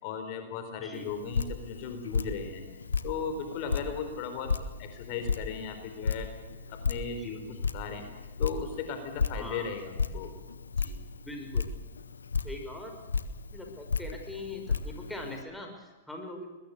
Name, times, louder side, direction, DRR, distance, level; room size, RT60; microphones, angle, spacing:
voice 1, 0.0-2.6 3.0-4.5 4.8-6.3 6.7-8.0 8.4-10.4 10.8-11.0, left 6 dB, 50° left, 7 dB, 4.1 m, -37 dB
voice 2, 0.8-1.1 3.6-3.9 7.1-7.4 9.3-9.7 11.2-11.8 12.4-12.9 13.5-16.6, left 1 dB, 5° left, 2 dB, 6.0 m, -42 dB
Drip, 0.9-15.4, left 5 dB, 90° left, 1.4 m, -35 dB
23.0 x 21.0 x 6.7 m, 1.2 s
hypercardioid pair, 110°, 0 cm